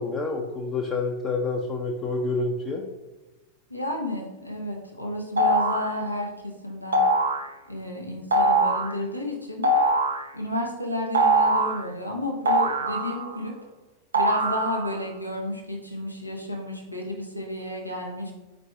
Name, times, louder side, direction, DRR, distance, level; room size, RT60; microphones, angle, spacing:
voice 1, 0.0-2.8, left 3 dB, 20° left, 0 dB, 0.5 m, -28 dB
voice 2, 3.7-7.1 7.7-9.7 10.3-13.5 14.1-18.3, left 1 dB, 90° left, 0 dB, 0.7 m, -32 dB
sound 1, 5.4-5.9 6.9-7.5 8.3-8.9 9.6-10.3 11.1-11.8 12.5-13.4 14.1-15.0, right 1 dB, 70° right, 0.5 m, -22 dB
4.6 x 2.6 x 4.4 m, 1.1 s
figure-of-eight pair, 90°, 0 cm